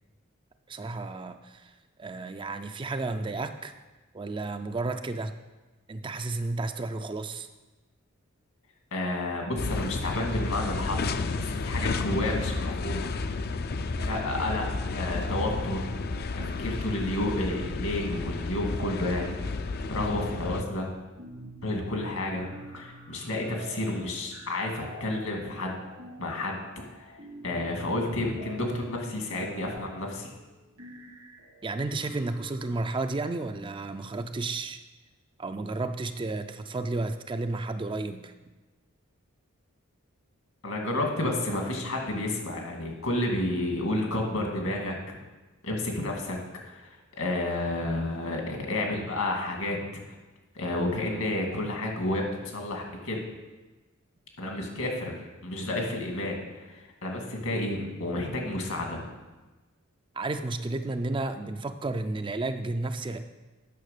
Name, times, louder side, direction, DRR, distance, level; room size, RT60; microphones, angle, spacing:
voice 1, 0.7-1.7 2.0-3.7 4.1-5.3 5.9-7.5 31.6-34.8 35.4-38.3 60.1-63.3, right 2 dB, 20° right, 8 dB, 0.3 m, -32 dB
voice 2, 8.9-13.1 14.0-14.7 14.9-15.9 16.3-19.4 19.9-20.9 21.6-25.8 26.2-26.6 27.0-27.1 27.4-30.3 40.6-45.2 45.6-46.4 46.6-49.8 50.5-53.2 54.4-55.1 55.4-59.0, left 1 dB, 75° left, 1 dB, 2.1 m, -31 dB
sound 1, 9.6-20.6, left 3 dB, 45° left, 0.4 m, -32 dB
sound 2, 14.0-14.6 14.9-33.1, right 1 dB, 80° right, 1.9 m, -48 dB
9.3 x 6.0 x 6.6 m, 1.2 s
head